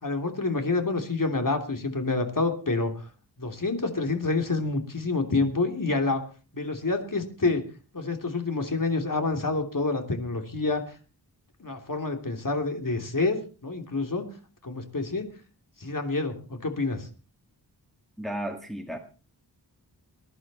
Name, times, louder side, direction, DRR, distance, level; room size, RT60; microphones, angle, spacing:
voice 1, 0.0-3.1 3.4-6.2 6.5-7.6 7.9-10.8 11.6-14.3 14.6-15.3 15.8-17.1, left 3 dB, 50° left, 5 dB, 3.2 m, -28 dB
voice 2, 18.2-19.0, right 1 dB, ahead, 3 dB, 1.9 m, -33 dB
21.0 x 11.0 x 4.3 m, 0.35 s
wide cardioid pair, 75°, 41 cm